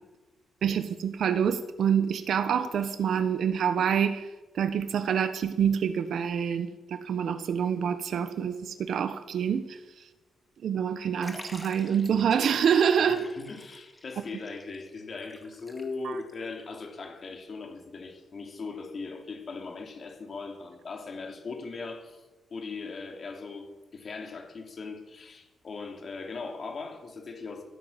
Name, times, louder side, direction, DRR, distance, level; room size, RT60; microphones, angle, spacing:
voice 1, 0.6-4.3 4.5-9.8 10.6-13.3 16.0-16.1, right 7 dB, 65° right, 11 dB, 1.1 m, -26 dB
Liquid, 11.2-16.3 16.6-16.7 17.6-17.7, left 1 dB, 10° left, 2.0 m, -48 dB
voice 2, 13.0-22.2 22.5-23.7 23.9-27.6, left 4 dB, 40° left, 3 dB, 3.0 m, -39 dB
15.0 x 9.4 x 7.3 m, 1.1 s
cardioid pair, 135°, 0 cm